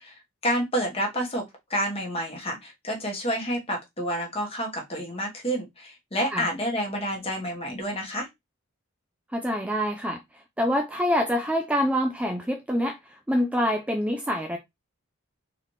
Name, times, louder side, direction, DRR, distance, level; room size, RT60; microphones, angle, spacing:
voice 1, 0.0-1.4 1.7-8.3, equal, 30° left, 1.2 m, -29 dB
voice 2, 9.3-10.2 10.6-14.6, equal, 5° right, 0.3 m, -26 dB
4.0 x 2.8 x 3.1 m
head